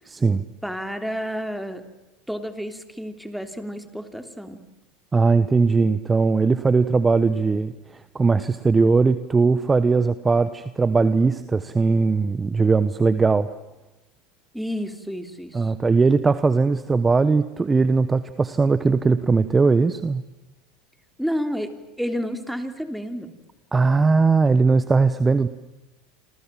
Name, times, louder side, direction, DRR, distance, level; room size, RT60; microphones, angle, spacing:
voice 1, 0.1-0.4 5.1-13.5 15.5-20.2 23.7-25.5, right 4 dB, 20° right, 13 dB, 1.2 m, -19 dB
voice 2, 0.6-1.9 2.3-4.6 14.5-15.7 21.2-23.3, equal, ahead, 7 dB, 3.3 m, -30 dB
28.0 x 27.0 x 7.6 m, 1.0 s
hypercardioid pair, 85°, 0 cm